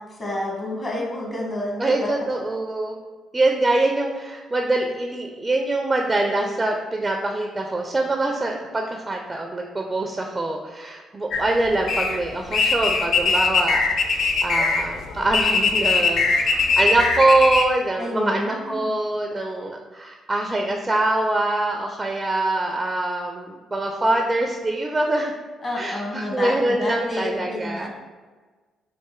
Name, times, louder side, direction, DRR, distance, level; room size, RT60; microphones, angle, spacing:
voice 1, 0.0-2.4 18.0-19.0 25.6-27.9, left 1 dB, 35° left, -2 dB, 1.4 m, -29 dB
voice 2, 1.8-3.0 3.3-25.3 25.8-27.9, right 2 dB, 25° right, 2 dB, 0.5 m, -24 dB
sound 1, 11.3-17.6, left 4 dB, 65° left, 0.4 m, -21 dB
4.2 x 2.5 x 3.7 m, 1.4 s
supercardioid pair, 55°, 0 cm